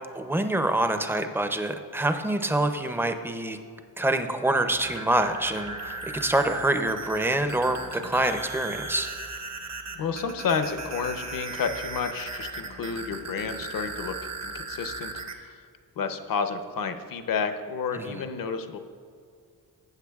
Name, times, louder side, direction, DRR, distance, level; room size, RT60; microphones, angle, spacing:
voice 1, 0.1-3.6 4.0-9.1 17.9-18.2, right 1 dB, 5° right, 7 dB, 0.5 m, -26 dB
sound 1, 4.7-15.3, right 3 dB, 45° right, 0.8 m, -37 dB
voice 2, 10.0-14.1 14.4-15.6 16.0-18.8, left 5 dB, 65° left, 8 dB, 0.7 m, -30 dB
14.5 x 7.6 x 2.3 m, 2.2 s
wide cardioid pair, 105°, 37 cm